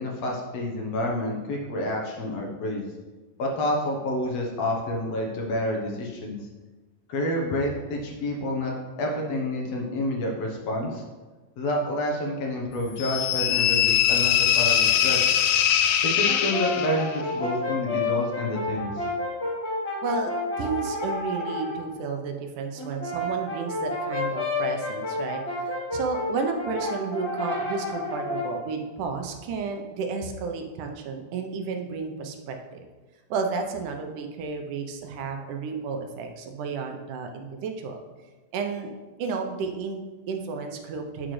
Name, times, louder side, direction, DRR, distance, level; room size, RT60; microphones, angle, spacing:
voice 1, 0.0-2.9 3.4-6.5 7.1-11.0 11.6-15.3 16.0-19.1, left 1 dB, 65° left, -1 dB, 1.9 m, -29 dB
sound 1, 13.0-17.2, left 9 dB, 90° left, 2.1 m, -22 dB
Brass instrument, 16.2-21.8 22.8-28.6, left 2 dB, 45° left, 0.8 m, -30 dB
voice 2, 20.0-20.3 20.6-32.8 33.3-38.0 38.5-38.9 39.2-41.3, right 5 dB, 90° right, 4 dB, 2.3 m, -32 dB
9.1 x 6.2 x 3.2 m, 1.3 s
omnidirectional pair, 3.5 m